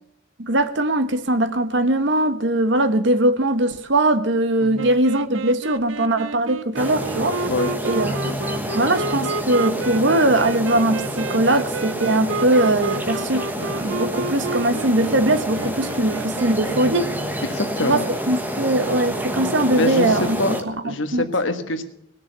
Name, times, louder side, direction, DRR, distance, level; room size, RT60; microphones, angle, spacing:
voice 1, 0.4-7.5 7.8-8.2 8.5-17.1 17.8-20.4 20.6-21.3, right 1 dB, 65° right, 1.1 m, -21 dB
sound 1, 4.8-17.4, right 4 dB, 80° right, 0.7 m, -31 dB
sound 2, 6.8-20.6, equal, 10° right, 1.3 m, -28 dB
voice 2, 17.4-18.1 19.7-20.6 20.8-21.8, left 2 dB, 75° left, 1.5 m, -25 dB
19.5 x 7.0 x 6.9 m
head